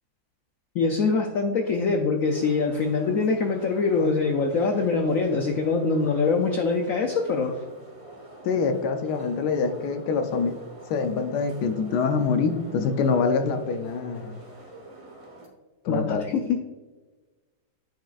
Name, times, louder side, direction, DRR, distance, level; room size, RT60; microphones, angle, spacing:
voice 1, 0.7-7.5 15.9-16.6, left 4 dB, 90° left, 4 dB, 0.7 m, -24 dB
sound 1, 2.2-15.5, right 1 dB, 25° right, 0.8 m, -47 dB
voice 2, 8.4-10.6 10.9-14.4 15.8-16.3, left 5 dB, 70° left, 7 dB, 1.1 m, -25 dB
10.5 x 4.7 x 2.4 m, 1.3 s
omnidirectional pair, 2.1 m